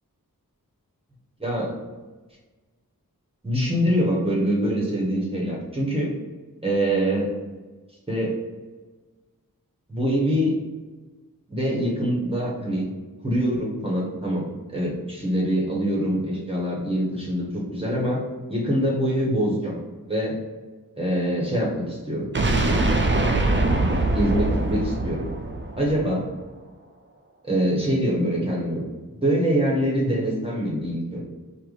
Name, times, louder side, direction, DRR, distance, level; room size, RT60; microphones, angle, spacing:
voice 1, 1.4-1.7 3.4-6.1 6.6-7.3 8.1-8.4 9.9-10.5 11.5-12.9 13.2-18.2 18.5-19.8 20.0-20.4 21.0-22.3 23.7-25.3 25.8-26.3 27.4-28.8 29.1-31.2, equal, 15° right, -4 dB, 1.1 m, -24 dB
sound 1, 22.3-26.3, right 2 dB, 35° right, 0.5 m, -23 dB
4.8 x 2.1 x 4.0 m, 1.3 s
wide cardioid pair, 65°, 35 cm